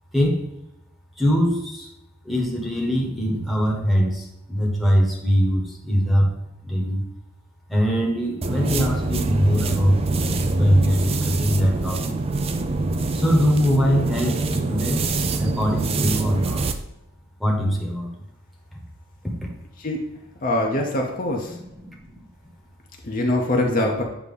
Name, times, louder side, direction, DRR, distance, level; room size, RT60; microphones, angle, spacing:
voice 1, 0.1-0.5 1.2-1.9 2.2-6.3 6.6-7.0 7.7-10.2 10.6-12.2 13.1-16.6 17.4-18.1 21.5-22.2, equal, ahead, -3 dB, 1.2 m, -22 dB
sound 1, 8.4-16.8, right 3 dB, 25° right, 0.4 m, -24 dB
voice 2, 20.4-21.6 23.0-24.0, left 1 dB, 40° left, 0 dB, 0.8 m, -23 dB
8.2 x 2.9 x 5.4 m, 0.90 s
head